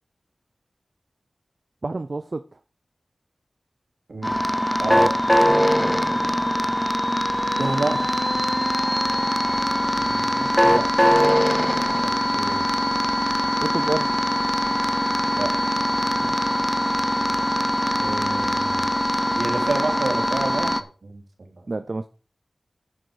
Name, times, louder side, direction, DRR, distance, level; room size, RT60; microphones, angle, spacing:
voice 1, 1.8-2.4 5.7-6.0 10.0-10.9 13.6-14.2 16.2-16.4 21.7-22.1, right 3 dB, 55° right, 10 dB, 0.7 m, -30 dB
voice 2, 4.1-4.4 4.8-5.2 7.6-8.4 12.0-12.7 15.3-15.9 18.0-18.9 19.3-21.6, right 2 dB, 70° right, 3 dB, 2.9 m, -29 dB
sound 1, 4.2-20.8, equal, 10° left, 0.9 m, -22 dB
8.9 x 8.8 x 5.0 m, 0.35 s
cardioid pair, 45°, 0 cm